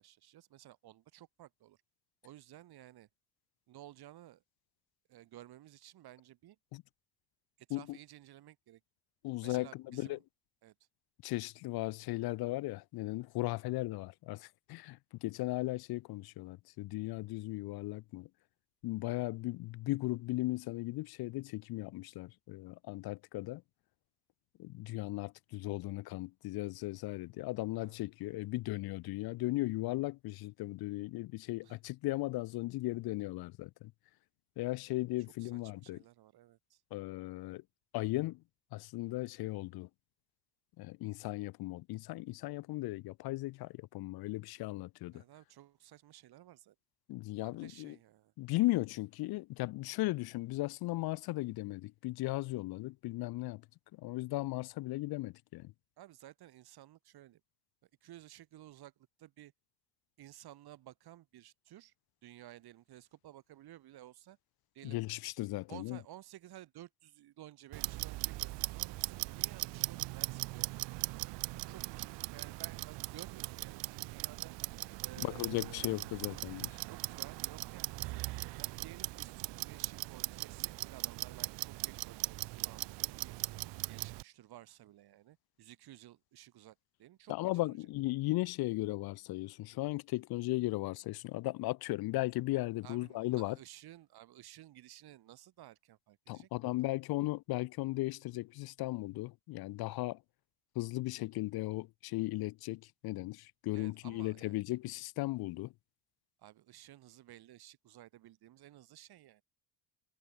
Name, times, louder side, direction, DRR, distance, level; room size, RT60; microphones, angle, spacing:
voice 1, 0.0-1.8 2.2-3.1 3.7-4.4 5.1-6.6 7.6-8.8 9.4-10.2 10.6-10.7 19.1-19.3 27.8-28.0 31.6-31.8 35.4-36.8 45.1-46.7 47.4-48.3 56.0-57.4 58.0-59.5 60.2-61.9 62.2-64.4 64.7-65.0 65.7-71.2 71.7-74.5 75.0-76.0 76.8-78.2 78.6-83.3 83.9-87.3 87.6-87.8 92.8-96.7 103.7-104.6 106.4-109.4, right 14 dB, 60° right, 4.6 m, -55 dB
voice 2, 9.2-10.2 11.2-18.3 18.8-23.6 24.6-33.9 34.6-36.0 36.9-37.6 37.9-38.4 38.7-39.9 40.8-45.2 47.1-48.0 48.4-53.6 53.9-55.7 64.8-66.0 75.2-76.8 87.3-93.6 96.3-100.2 100.8-105.7, left 19 dB, 60° left, 0.6 m, -37 dB
Clock, 67.7-84.2, right 20 dB, 80° right, 1.5 m, -39 dB
cardioid pair, 135°, 42 cm